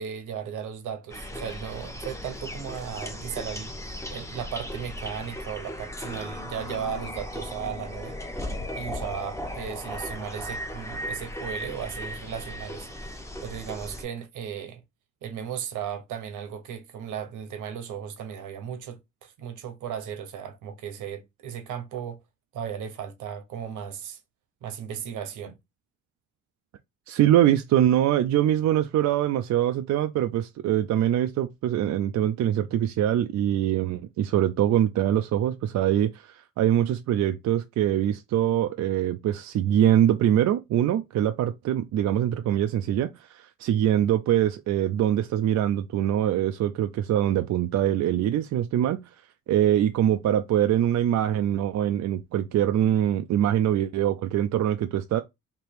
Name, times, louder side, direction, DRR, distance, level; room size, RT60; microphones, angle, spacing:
voice 1, 0.0-3.7 4.1-8.2 8.7-14.8 15.2-22.2 22.5-24.2 24.6-25.6, right 8 dB, 85° right, 1.1 m, -36 dB
sound 1, 1.1-14.0, left 1 dB, 10° left, 0.9 m, -36 dB
voice 2, 27.1-49.0 49.5-55.2, right 11 dB, 65° right, 0.5 m, -23 dB
3.3 x 2.9 x 4.5 m
cardioid pair, 90°, 30 cm